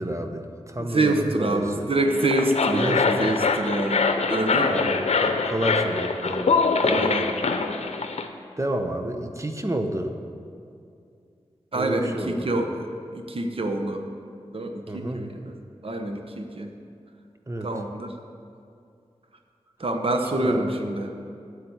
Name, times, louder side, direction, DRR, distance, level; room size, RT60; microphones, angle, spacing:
voice 1, 0.0-1.9 2.8-3.3 4.6-7.1 8.6-10.1 11.7-12.5 14.9-15.2 17.5-17.7 20.3-20.7, right 1 dB, 25° right, 5 dB, 1.0 m, -30 dB
voice 2, 0.9-4.9 6.8-7.2 11.7-12.9 13.1-14.0 14.5-15.5 15.8-16.7 17.6-18.1 19.8-21.1, right 2 dB, 60° right, 4 dB, 1.0 m, -26 dB
sound 1, 2.1-8.3, left 4 dB, 75° left, 0.8 m, -24 dB
8.4 x 8.3 x 7.9 m, 2.4 s
cardioid pair, 55°, 11 cm